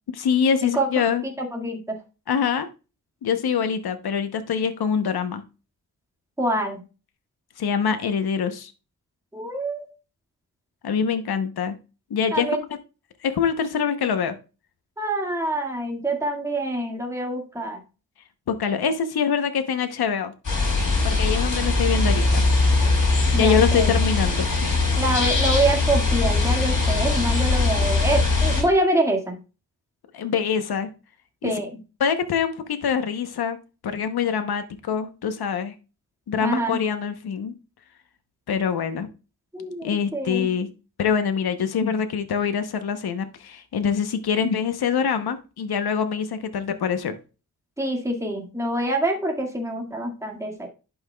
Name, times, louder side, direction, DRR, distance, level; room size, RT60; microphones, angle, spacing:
voice 1, 0.1-1.2 2.3-2.7 3.2-5.4 7.6-8.7 10.8-11.8 12.1-12.5 13.2-14.4 18.5-20.3 21.0-22.4 23.3-24.8 30.1-30.9 31.4-31.6 32.0-33.6 33.8-35.7 36.3-37.5 38.5-39.1 39.8-40.7 41.0-47.2, left 7 dB, 75° left, 8 dB, 0.9 m, -24 dB
voice 2, 1.4-2.0 6.4-6.8 9.3-9.9 12.3-12.6 15.0-17.8 22.8-22.9 23.3-24.0 25.0-29.4 31.4-31.7 36.4-36.8 39.5-40.5 47.8-50.7, right 1 dB, 10° right, 1 dB, 1.9 m, -25 dB
sound 1, 20.4-28.6, left 3 dB, 55° left, 3.9 m, -21 dB
11.5 x 5.6 x 2.3 m, 0.32 s
cardioid pair, 75°, 38 cm